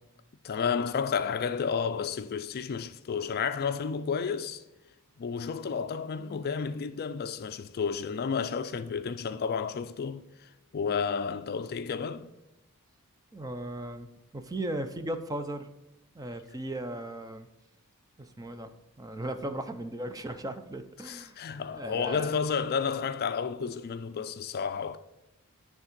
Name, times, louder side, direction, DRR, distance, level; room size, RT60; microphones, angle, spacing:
voice 1, 0.4-4.6 5.2-12.3 21.0-25.0, left 6 dB, 45° left, 0.4 m, -31 dB
voice 2, 13.3-15.7 16.1-17.5 18.2-18.7 19.0-21.4 21.7-22.3, right 1 dB, 15° right, 0.5 m, -37 dB
9.8 x 3.5 x 5.1 m
head